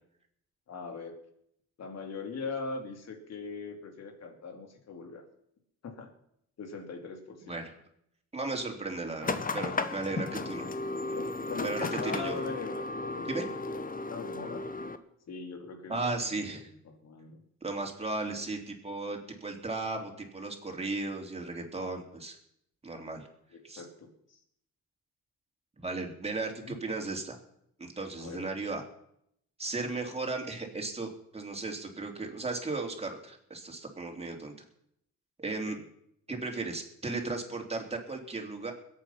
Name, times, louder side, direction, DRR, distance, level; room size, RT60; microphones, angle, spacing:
voice 1, 0.7-1.2 1.8-5.2 5.8-6.1 6.6-7.6 10.3-10.4 11.1-14.6 15.3-16.4 16.6-17.4 23.5-24.4 26.6-26.8 28.2-28.4 35.7-35.8, left 4 dB, 60° left, 5 dB, 2.9 m, -41 dB
voice 2, 8.3-10.6 11.6-12.4 13.3-13.5 15.9-16.7 17.6-22.4 22.8-23.3 23.6-23.8 25.8-27.4 27.8-28.8 29.6-34.5 35.4-35.8 36.3-38.7, right 3 dB, 20° right, 2 dB, 3.3 m, -35 dB
sound 1, 9.2-15.0, left 3 dB, 30° left, 1.1 m, -34 dB
21.5 x 8.5 x 5.8 m, 0.74 s
cardioid pair, 90°, 30 cm